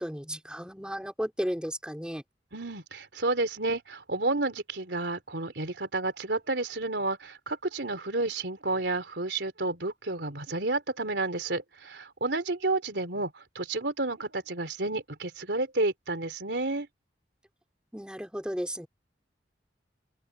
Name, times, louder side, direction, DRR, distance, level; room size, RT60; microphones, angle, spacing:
voice 1, 0.0-2.2 17.9-18.9, equal, 5° right, 3.6 m, -34 dB
voice 2, 2.5-16.9, right 2 dB, 85° right, 3.3 m, -31 dB
open air
head